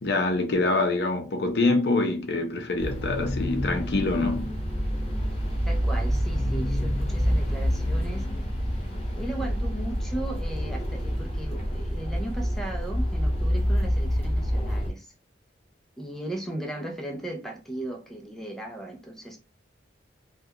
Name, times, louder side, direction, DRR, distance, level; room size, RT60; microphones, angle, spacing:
voice 1, 0.0-4.5, left 2 dB, 60° left, 0.5 m, -25 dB
sound 1, 2.8-14.9, equal, 35° left, 0.8 m, -27 dB
voice 2, 5.7-8.3 9.2-15.1 16.0-19.4, right 1 dB, ahead, 0.3 m, -36 dB
2.3 x 2.1 x 2.7 m
head